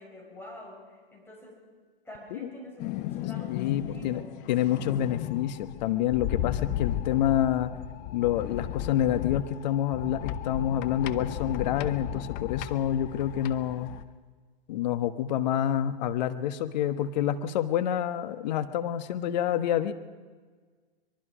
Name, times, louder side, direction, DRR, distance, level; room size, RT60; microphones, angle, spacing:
voice 1, 0.0-1.7 2.0-4.3, equal, 5° left, -3 dB, 6.4 m, -46 dB
sound 1, 2.8-14.0, left 13 dB, 25° left, 0.8 m, -35 dB
voice 2, 3.5-4.2 4.5-7.7 8.1-13.9 14.7-19.9, left 11 dB, 45° left, 10 dB, 1.3 m, -28 dB
23.5 x 22.0 x 5.1 m, 1.5 s
hypercardioid pair, 120°, 31 cm